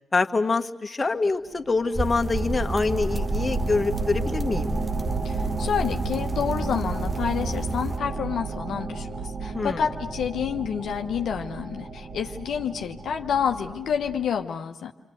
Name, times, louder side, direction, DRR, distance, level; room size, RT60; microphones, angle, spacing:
voice 1, 0.1-4.7 9.5-9.8, left 3 dB, 35° left, 6 dB, 1.5 m, -25 dB
sound 1, 1.5-14.3, right 3 dB, 50° right, 3.6 m, -33 dB
sound 2, 1.9-8.0, right 2 dB, 30° right, 1.1 m, -30 dB
voice 2, 5.2-14.9, left 7 dB, 75° left, 4 dB, 1.0 m, -29 dB
29.0 x 24.5 x 8.0 m, 0.91 s
supercardioid pair, 45°, 0 cm